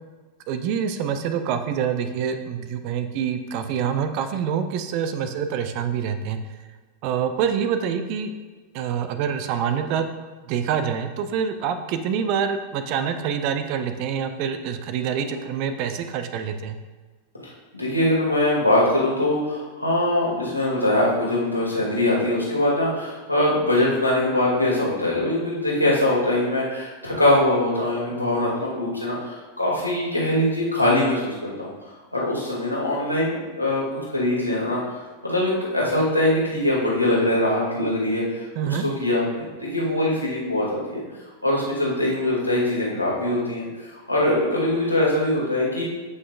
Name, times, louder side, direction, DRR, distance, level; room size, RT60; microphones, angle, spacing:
voice 1, 0.5-6.4 7.0-8.3 8.7-10.1 10.5-16.8 38.6-38.8, right 7 dB, 45° right, 9 dB, 0.7 m, -26 dB
voice 2, 17.7-31.7 32.1-38.4 38.8-41.0 41.4-43.7 44.1-45.8, left 1 dB, 90° left, -5 dB, 2.4 m, -22 dB
14.0 x 5.7 x 2.5 m, 1.3 s
figure-of-eight pair, 90°, 0 cm